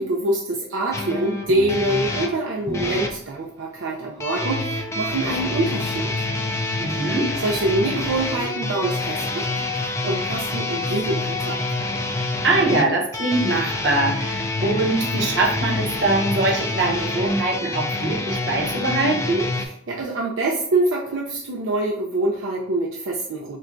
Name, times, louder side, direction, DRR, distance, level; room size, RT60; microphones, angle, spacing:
voice 1, 0.0-6.2 6.9-7.0 7.4-9.5 9.8-11.8 19.6-23.6, right 2 dB, 75° right, -2 dB, 0.5 m, -25 dB
sound 1, 0.9-3.2 4.2-19.6, left 2 dB, 15° left, 0.3 m, -27 dB
voice 2, 6.8-7.3 12.4-19.5, right 2 dB, 60° right, -1 dB, 1.0 m, -22 dB
6.1 x 2.2 x 2.6 m, 0.69 s
head